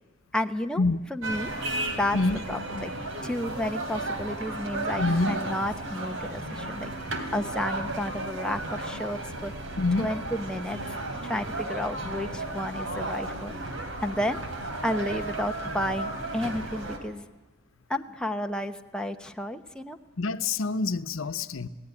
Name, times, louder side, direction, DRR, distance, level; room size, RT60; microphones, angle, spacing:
voice 1, 0.3-0.8 1.1-1.5 2.0-2.2 2.5-2.9 3.2-6.9 7.3-9.5 10.0-10.8 11.2-13.5 14.0-14.4 14.8-17.3 17.9-20.0, left 1 dB, 5° left, 5 dB, 0.9 m, -31 dB
sound 1, 1.2-17.0, right 2 dB, 80° right, 3.1 m, -34 dB
voice 2, 5.0-5.4 9.8-10.1 20.2-21.7, left 3 dB, 90° left, 11 dB, 0.9 m, -26 dB
28.0 x 17.5 x 9.9 m, 1.2 s
head